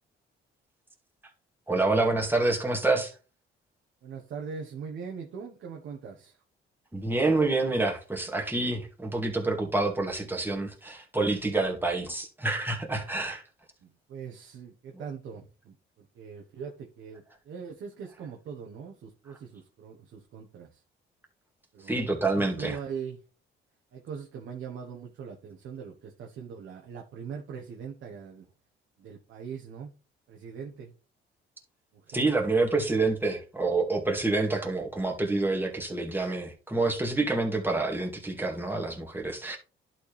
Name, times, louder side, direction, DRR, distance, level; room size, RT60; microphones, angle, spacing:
voice 1, 1.7-3.1 6.9-13.4 21.8-22.8 32.1-39.6, right 2 dB, 10° right, 2.2 m, -27 dB
voice 2, 4.0-6.4 13.8-20.8 21.7-23.2 23.9-28.5 29.0-29.9 30.3-30.9 31.9-32.3, right 6 dB, 75° right, 1.3 m, -41 dB
11.0 x 4.5 x 3.4 m
cardioid pair, 90°, 20 cm